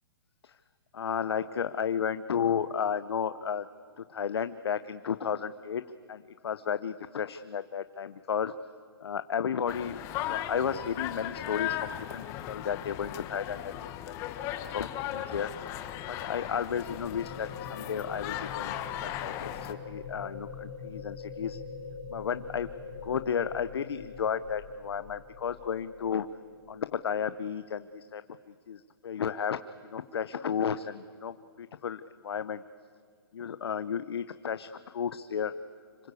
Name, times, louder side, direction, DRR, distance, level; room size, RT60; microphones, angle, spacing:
voice 1, 0.9-3.7 4.0-5.8 6.1-8.5 9.0-10.0 10.3-14.2 14.6-15.5 16.1-21.6 22.1-22.7 23.0-26.3 26.7-28.2 28.7-32.6 33.3-35.5, left 7 dB, 80° left, 12 dB, 0.8 m, -33 dB
sound 1, 9.7-19.7, left 12 dB, 20° left, 1.0 m, -37 dB
sound 2, 15.4-27.2, left 5 dB, 40° left, 1.6 m, -44 dB
25.5 x 22.5 x 8.3 m, 2.1 s
hypercardioid pair, 160°, 13 cm